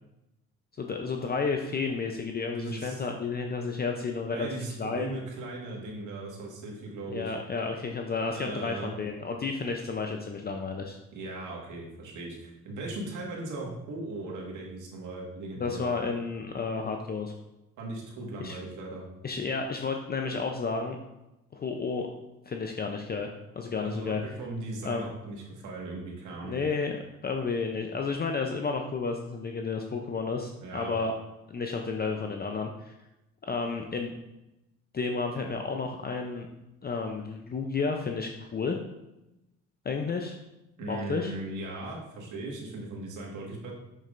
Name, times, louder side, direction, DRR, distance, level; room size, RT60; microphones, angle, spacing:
voice 1, 0.8-4.5 4.8-5.2 7.1-11.0 15.6-17.3 18.4-18.6 19.2-21.0 21.5-22.1 22.5-24.2 24.8-25.1 26.4-31.1 31.5-32.9 33.5-34.1 34.9-36.5 36.8-38.8 39.8-40.4 40.9-41.3, left 4 dB, 30° left, 3 dB, 0.6 m, -31 dB
voice 2, 2.5-3.0 4.2-7.3 8.3-8.9 11.1-15.9 17.8-19.0 23.8-26.6 30.6-30.9 40.8-43.7, right 2 dB, 85° right, -2 dB, 1.7 m, -38 dB
6.4 x 6.3 x 2.5 m, 0.93 s
cardioid pair, 90°, 30 cm